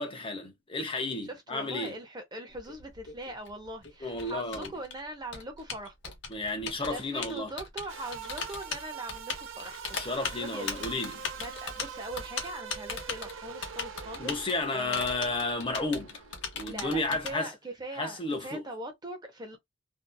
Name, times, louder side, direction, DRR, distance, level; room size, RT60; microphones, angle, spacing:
voice 1, 0.0-1.9 4.0-4.7 6.3-7.5 9.9-11.2 14.2-16.2 16.5-17.5 18.0-18.6, left 2 dB, 25° left, 0.7 m, -32 dB
voice 2, 1.3-6.2 6.9-15.1 16.6-19.6, right 1 dB, 20° right, 0.6 m, -41 dB
Typing, 2.5-17.3, left 5 dB, 65° left, 0.8 m, -38 dB
sound 1, 7.9-16.7, right 7 dB, 85° right, 0.7 m, -44 dB
2.7 x 2.3 x 2.2 m
head